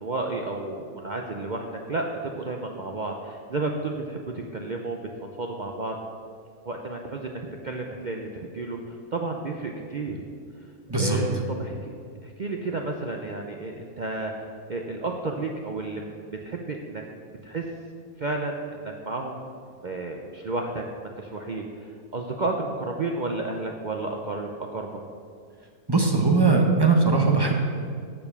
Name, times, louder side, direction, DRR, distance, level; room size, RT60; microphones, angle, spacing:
voice 1, 0.0-5.0 5.4-5.9 6.6-8.8 9.1-10.2 11.0-11.8 12.2-14.3 14.7-17.0 17.4-17.7 18.2-19.4 19.8-21.6 22.1-24.9, right 3 dB, 65° right, 1 dB, 0.4 m, -31 dB
voice 2, 25.9-27.6, right 4 dB, 20° right, 1 dB, 0.7 m, -20 dB
7.7 x 7.0 x 6.9 m, 2.2 s
omnidirectional pair, 1.7 m